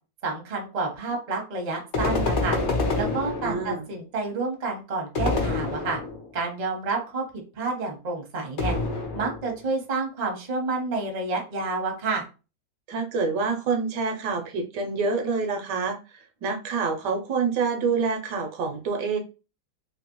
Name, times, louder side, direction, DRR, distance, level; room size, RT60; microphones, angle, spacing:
voice 1, 0.2-2.6 3.0-6.0 6.3-8.8 9.1-12.2, right 3 dB, 40° right, 2 dB, 0.6 m, -29 dB
sound 1, 1.9-3.9 5.1-6.4 8.6-9.6, left 3 dB, 90° left, 0.4 m, -27 dB
voice 2, 3.4-3.9 12.9-19.2, right 4 dB, 75° right, 4 dB, 1.3 m, -27 dB
3.2 x 2.7 x 2.9 m, 0.32 s
omnidirectional pair, 2.0 m